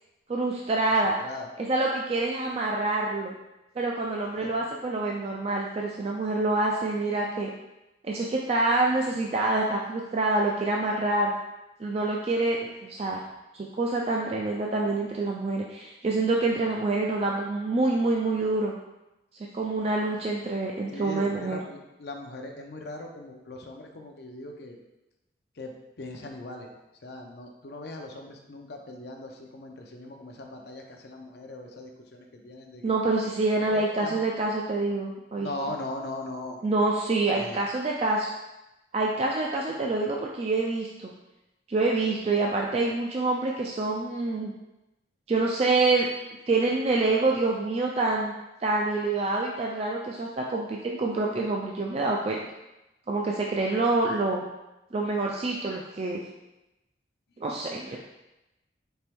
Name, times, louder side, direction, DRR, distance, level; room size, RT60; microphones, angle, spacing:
voice 1, 0.3-1.2 1.6-3.3 3.8-7.5 8.0-11.3 11.8-13.2 13.5-18.7 19.5-21.6 32.8-35.5 36.6-38.3 38.9-41.1 41.7-44.5 45.3-46.1 46.5-48.3 48.6-52.4 53.1-54.4 54.9-56.2 57.4-58.0, right 2 dB, 35° right, -1 dB, 0.3 m, -26 dB
voice 2, 20.9-24.8 25.6-25.7 26.0-26.7 27.0-32.9 33.7-34.3 35.4-36.6 37.4-37.6, left 2 dB, 60° left, 2 dB, 0.6 m, -39 dB
4.4 x 3.0 x 3.4 m, 0.96 s
head